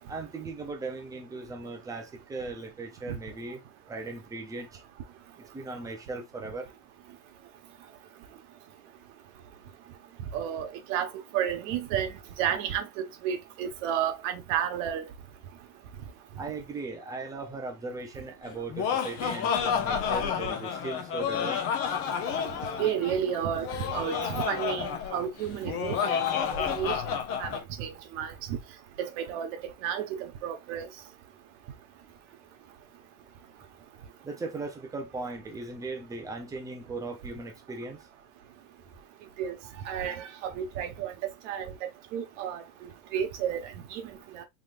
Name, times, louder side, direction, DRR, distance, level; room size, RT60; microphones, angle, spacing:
voice 1, 0.1-4.8 5.5-6.7 16.4-21.6 34.2-38.0, right 3 dB, 5° right, 0.5 m, -38 dB
voice 2, 10.3-15.0 22.8-26.2 26.5-26.9 27.4-28.6 29.0-29.5 29.8-30.9 39.4-39.5 39.8-41.1 41.4-42.6 43.1-44.0 44.3-44.4, right 9 dB, 50° right, 1.3 m, -32 dB
Laughter, 18.5-27.6, left 7 dB, 30° left, 0.8 m, -30 dB
3.9 x 3.2 x 2.5 m
supercardioid pair, 135°, 48 cm